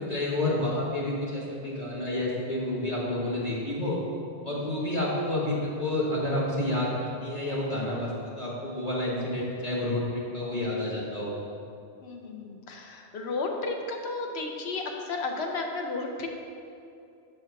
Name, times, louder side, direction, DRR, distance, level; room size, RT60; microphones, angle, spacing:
voice 1, 0.0-4.0 4.4-8.1 8.4-11.3, left 1 dB, 40° left, -6 dB, 1.0 m, -29 dB
voice 2, 12.0-16.3, left 3 dB, 70° left, 2 dB, 0.9 m, -33 dB
5.9 x 3.4 x 5.6 m, 2.6 s
omnidirectional pair, 1.2 m